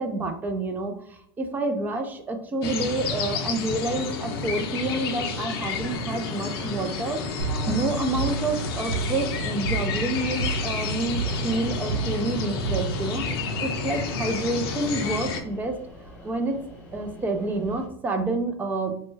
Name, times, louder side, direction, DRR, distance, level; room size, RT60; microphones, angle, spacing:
voice 1, 0.0-13.3 13.6-15.8 16.2-16.6 16.9-19.0, right 2 dB, 15° right, 6 dB, 0.4 m, -28 dB
sound 1, 2.6-15.4, left 4 dB, 75° left, 0.5 m, -30 dB
sound 2, 5.6-17.9, left 1 dB, 10° left, 0.9 m, -44 dB
sound 3, 7.4-14.0, right 5 dB, 70° right, 0.7 m, -32 dB
3.1 x 2.1 x 3.2 m, 0.65 s
supercardioid pair, 140°, 13 cm